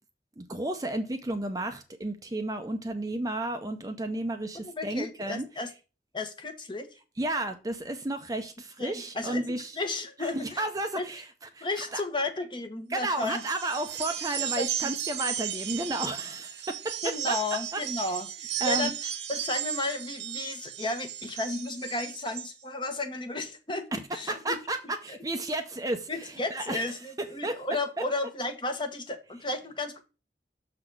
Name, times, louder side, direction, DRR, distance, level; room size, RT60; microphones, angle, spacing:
voice 1, 0.4-5.5 7.2-9.8 10.2-11.3 11.5-12.0 12.9-17.4 17.7-17.8 18.6-18.9 24.3-26.8 27.2-27.6, right 1 dB, 20° right, 0.6 m, -32 dB
voice 2, 4.6-5.7 6.1-6.9 8.8-10.7 10.9-11.1 11.6-13.4 14.4-14.9 17.0-23.9 24.1-24.6 25.1-25.2 26.1-30.0, left 2 dB, 25° left, 1.1 m, -33 dB
sound 1, 13.1-22.5, right 10 dB, 80° right, 1.2 m, -35 dB
6.6 x 4.0 x 6.0 m
head